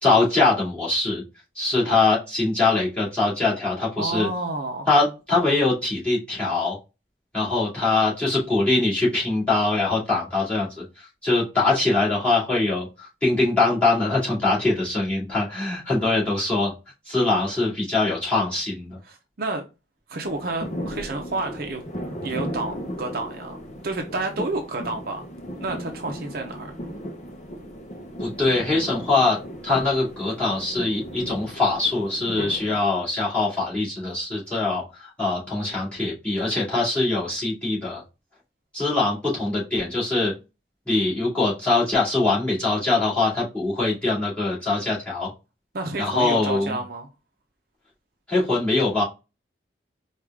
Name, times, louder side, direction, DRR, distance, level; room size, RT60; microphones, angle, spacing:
voice 1, 0.0-1.2 1.5-4.3 4.9-6.8 7.3-16.7 17.1-19.0 28.2-29.4 29.6-38.0 38.7-40.3 40.9-45.3 46.0-46.8 48.3-49.0, left 3 dB, 5° left, 2.4 m, -23 dB
voice 2, 4.0-4.9 19.0-19.6 20.1-21.8 22.2-25.3 25.6-26.7 45.7-47.1, right 2 dB, 50° right, 0.6 m, -30 dB
sound 1, 20.2-32.8, equal, 40° left, 0.7 m, -36 dB
4.7 x 2.4 x 3.5 m
head